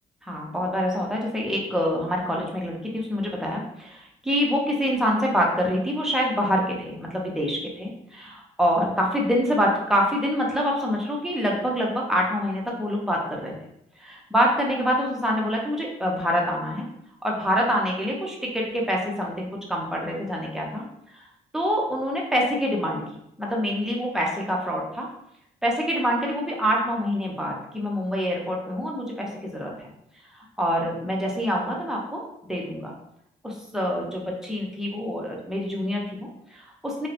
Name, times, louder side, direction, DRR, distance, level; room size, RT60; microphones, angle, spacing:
voice 1, 0.3-13.5 14.0-16.9 17.2-20.8 21.1-21.2 21.5-25.1 25.6-29.9 30.3-32.2 32.5-32.9 33.4-37.1, equal, 5° right, -2 dB, 0.6 m, -26 dB
2.7 x 2.0 x 2.4 m, 0.77 s
cardioid pair, 105°, 16 cm